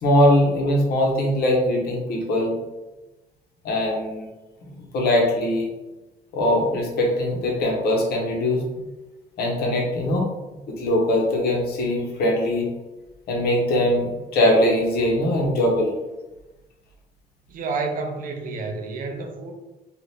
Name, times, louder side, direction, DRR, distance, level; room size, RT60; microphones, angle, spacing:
voice 1, 0.0-2.6 3.6-4.3 4.9-5.7 6.3-8.6 9.4-10.3 10.7-12.7 13.3-15.9, left 1 dB, 70° left, -1 dB, 0.9 m, -21 dB
voice 2, 17.5-19.5, right 3 dB, 55° right, 4 dB, 0.5 m, -29 dB
2.7 x 2.5 x 3.4 m, 1.1 s
cardioid pair, 110°, 17 cm